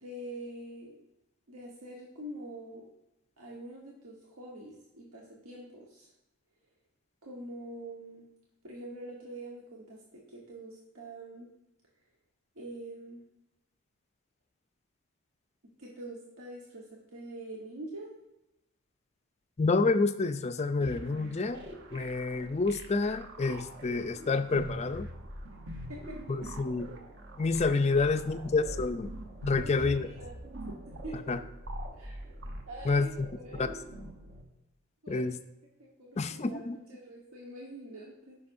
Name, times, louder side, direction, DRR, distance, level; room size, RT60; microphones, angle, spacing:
voice 1, 0.0-1.0 1.5-2.9 3.4-6.1 7.2-8.2 8.6-11.5 12.5-13.2 15.8-18.2 25.9-26.4 28.0-28.1 29.6-30.3 31.0-31.2 32.0-32.3 32.7-33.1 33.4-33.6 35.0-35.3 35.8-38.4, right 1 dB, 75° right, -3 dB, 1.2 m, -45 dB
voice 2, 19.6-21.6 21.9-25.1 26.6-26.9 27.4-29.1 29.4-30.1 31.3-31.4 32.9-33.1 33.6-33.7 35.1-35.3 36.2-36.8, left 3 dB, 30° left, 9 dB, 0.4 m, -28 dB
sound 1, 20.8-34.4, right 1 dB, 50° right, 1.0 m, -43 dB
14.0 x 5.7 x 2.6 m, 0.92 s
head